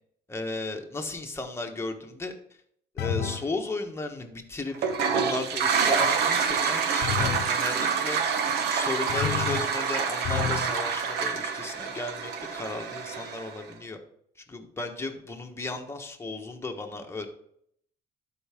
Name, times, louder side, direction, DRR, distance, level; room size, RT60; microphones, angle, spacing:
voice 1, 0.3-2.3 2.9-8.2 8.7-14.0 14.5-17.3, left 3 dB, 15° left, 3 dB, 1.2 m, -35 dB
sound 1, 3.0-3.5 7.0-7.6 9.1-9.8 10.2-10.8, left 8 dB, 70° left, 0.9 m, -30 dB
Toilet flush, 4.7-13.6, right 6 dB, 80° right, 1.1 m, -27 dB
12.0 x 4.8 x 3.6 m, 0.68 s
cardioid pair, 110°, 17 cm